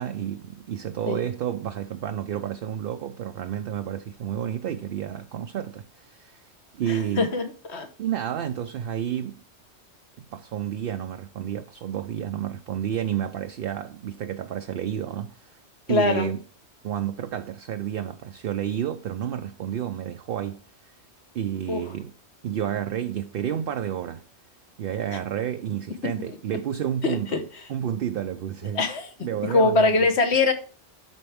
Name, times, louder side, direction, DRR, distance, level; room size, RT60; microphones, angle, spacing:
voice 1, 0.0-6.4 6.7-7.3 8.0-9.4 10.2-15.6 15.9-16.4 16.8-20.6 21.3-22.1 22.4-24.2 24.8-27.4 27.7-28.9 29.2-30.1, right 10 dB, 60° right, 0.7 m, -30 dB
voice 2, 6.9-7.9 15.9-16.3 21.7-21.8 27.0-27.4 28.7-29.1 29.5-30.5, left 3 dB, 65° left, 1.5 m, -22 dB
12.0 x 4.4 x 3.5 m
omnidirectional pair, 1.2 m